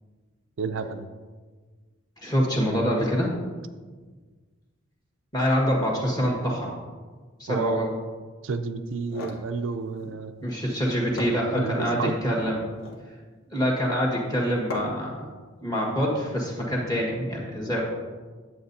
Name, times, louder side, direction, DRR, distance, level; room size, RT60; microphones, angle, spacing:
voice 1, 0.6-1.1 7.5-7.8 8.4-10.3 11.6-12.2, right 4 dB, 65° right, 8 dB, 0.4 m, -30 dB
voice 2, 2.2-3.3 5.3-6.7 7.4-7.9 10.4-12.7 13.5-15.3 15.6-17.8, equal, 20° left, -3 dB, 1.6 m, -25 dB
sound 1, 8.9-9.5 10.7-10.8 11.2-12.0 12.6-13.1 14.7-15.1, left 2 dB, 70° left, 1.2 m, -37 dB
10.0 x 7.7 x 2.7 m, 1.4 s
head